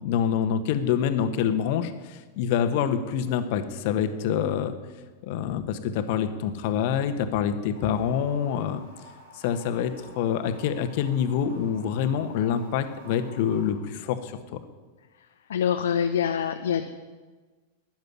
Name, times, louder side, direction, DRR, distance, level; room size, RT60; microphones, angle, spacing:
voice 1, 0.0-4.8 5.2-8.8 9.3-14.6, left 8 dB, 50° left, 9 dB, 1.4 m, -26 dB
sound 1, 7.7-13.7, right 1 dB, 70° right, 5.6 m, -50 dB
voice 2, 15.5-16.9, left 8 dB, 65° left, 6 dB, 0.9 m, -25 dB
13.5 x 11.0 x 9.6 m, 1.3 s
figure-of-eight pair, 90°, 0 cm